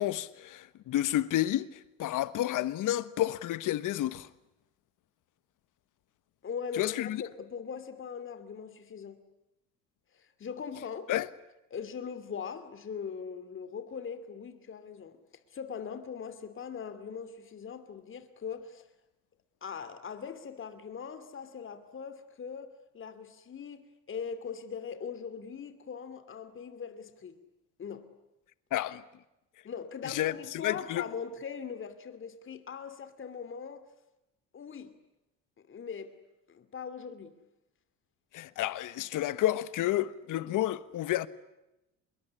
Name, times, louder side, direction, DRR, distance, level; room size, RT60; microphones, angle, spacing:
voice 1, 0.0-4.3 6.7-7.2 11.1-11.3 28.7-29.0 30.0-31.1 38.3-41.3, left 14 dB, 60° left, 1.4 m, -30 dB
voice 2, 6.4-9.2 10.1-11.1 11.7-15.2 15.5-18.9 19.6-27.4 27.8-28.1 29.6-33.8 34.5-34.9 35.7-36.2 36.5-37.4, left 6 dB, 35° left, 2.7 m, -41 dB
26.0 x 22.0 x 9.9 m
cardioid pair, 115°, 34 cm